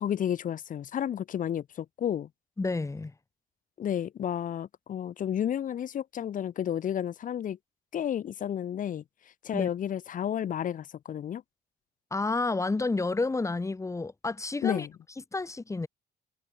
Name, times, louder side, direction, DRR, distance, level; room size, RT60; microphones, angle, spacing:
voice 1, 0.0-2.3 3.8-7.6 7.9-9.0 9.4-11.4 14.6-14.9, left 9 dB, 50° left, 3.3 m, -31 dB
voice 2, 2.6-3.1 9.5-9.7 12.1-14.9 15.3-15.9, left 3 dB, 15° left, 6.2 m, -30 dB
cardioid pair, 110°, 17 cm